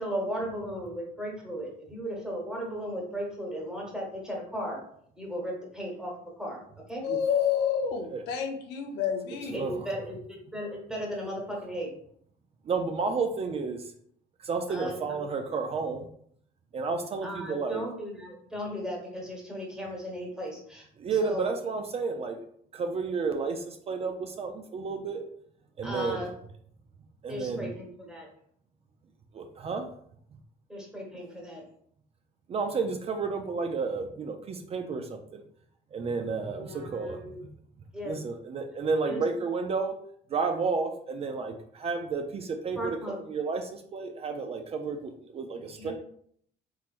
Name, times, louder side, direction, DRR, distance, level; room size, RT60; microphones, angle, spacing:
voice 1, 0.0-4.8 5.2-6.6 6.9-7.0 9.5-11.9 14.7-15.2 17.2-20.9 21.2-21.5 25.8-26.3 27.3-28.3 30.7-31.6 36.5-37.4 37.9-38.2 39.0-39.2 42.8-43.2 45.8-45.9, equal, 5° right, -2 dB, 1.1 m, -36 dB
voice 2, 7.0-9.6, left 8 dB, 85° left, 3 dB, 0.6 m, -29 dB
voice 3, 9.5-9.9 12.6-13.9 14.4-16.1 16.7-17.8 21.0-22.4 22.7-25.2 25.8-26.3 27.2-27.7 29.3-29.9 32.5-35.4 35.9-37.2 38.0-39.9 40.3-45.9, right 4 dB, 35° right, 5 dB, 0.4 m, -31 dB
3.7 x 3.0 x 2.4 m, 0.64 s
cardioid pair, 110°, 17 cm